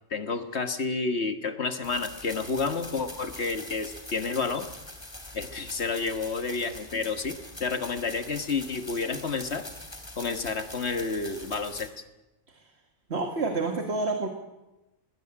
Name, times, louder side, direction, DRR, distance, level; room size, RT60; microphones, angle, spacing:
voice 1, 0.1-4.7 5.3-9.7 10.2-11.9, left 4 dB, 55° left, 8 dB, 1.7 m, -30 dB
sound 1, 1.8-11.9, left 1 dB, 20° left, 2.7 m, -43 dB
voice 2, 13.1-14.3, right 3 dB, 50° right, 5 dB, 2.1 m, -28 dB
20.5 x 17.0 x 9.9 m, 1.0 s
omnidirectional pair, 1.4 m